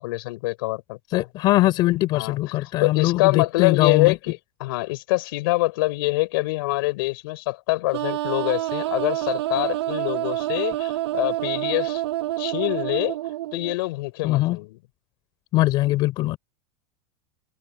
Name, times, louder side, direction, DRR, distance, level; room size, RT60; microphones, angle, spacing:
voice 1, 0.0-1.3 2.1-12.0 12.4-13.2 13.5-14.8, left 21 dB, 55° left, 5.9 m, -25 dB
voice 2, 1.1-4.1 14.2-14.6 15.5-16.4, left 17 dB, 30° left, 4.8 m, -21 dB
sound 1, 7.9-13.7, right 15 dB, 85° right, 7.3 m, -27 dB
supercardioid pair, 180°, 14 cm